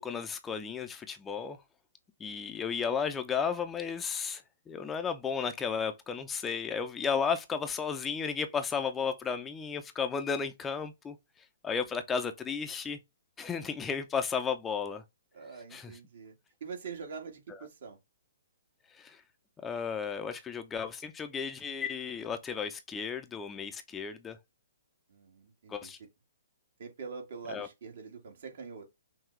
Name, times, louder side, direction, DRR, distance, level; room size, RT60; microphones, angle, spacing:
voice 1, 0.0-1.6 2.2-4.4 4.7-11.2 11.6-13.0 13.4-15.0 15.7-15.9 18.9-19.2 19.6-24.4 25.7-26.0 27.5-27.7, left 6 dB, 15° left, 0.6 m, -34 dB
voice 2, 15.3-16.3 16.6-18.0 25.1-26.1 26.8-28.8, right 5 dB, 60° right, 1.8 m, -44 dB
5.8 x 2.3 x 3.1 m
hypercardioid pair, 130°, 0 cm